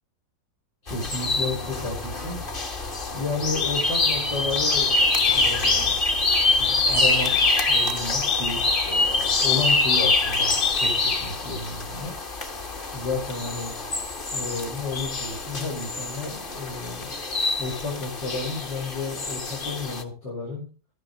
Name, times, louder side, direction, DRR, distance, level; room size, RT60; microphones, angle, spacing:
voice 1, 0.8-2.4 3.1-4.9 5.3-5.9 6.6-12.1 12.9-13.7 14.3-17.1 17.6-20.7, left 3 dB, 80° left, -3 dB, 5.0 m, -32 dB
sound 1, 0.9-20.0, left 3 dB, 35° left, 1.3 m, -25 dB
12.5 x 9.7 x 3.9 m, 0.34 s
omnidirectional pair, 2.0 m